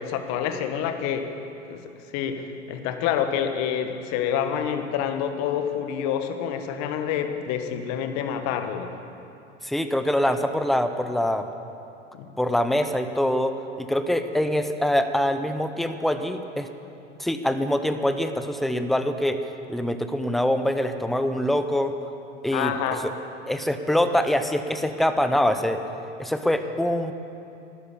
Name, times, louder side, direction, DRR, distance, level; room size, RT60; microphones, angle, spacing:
voice 1, 0.0-1.4 1.7-1.8 2.1-8.9 12.1-12.3 22.5-23.1, left 8 dB, 45° left, 7 dB, 1.4 m, -27 dB
voice 2, 9.6-11.5 12.4-13.5 13.8-16.7 17.2-19.4 19.7-21.9 22.4-22.7 23.0-23.1 23.5-25.8 26.2-27.1, left 1 dB, ahead, 9 dB, 0.7 m, -24 dB
12.5 x 11.5 x 8.6 m, 2.7 s
hypercardioid pair, 90°, 36 cm